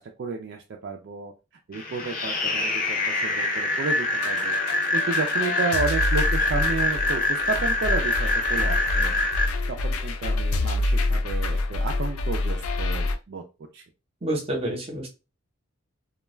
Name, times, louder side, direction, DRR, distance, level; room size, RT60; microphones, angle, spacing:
voice 1, 0.0-1.3 1.7-4.6 4.9-9.5 9.8-13.4 13.7-13.8, right 4 dB, 50° right, 2 dB, 0.3 m, -32 dB
sound 1, 1.7-9.4, left 2 dB, 40° left, 0.7 m, -25 dB
sound 2, 4.2-13.2, left 2 dB, 85° left, 0.4 m, -27 dB
voice 2, 14.2-15.1, right 1 dB, 25° right, 1 dB, 0.8 m, -28 dB
2.2 x 2.2 x 3.1 m, 0.28 s
head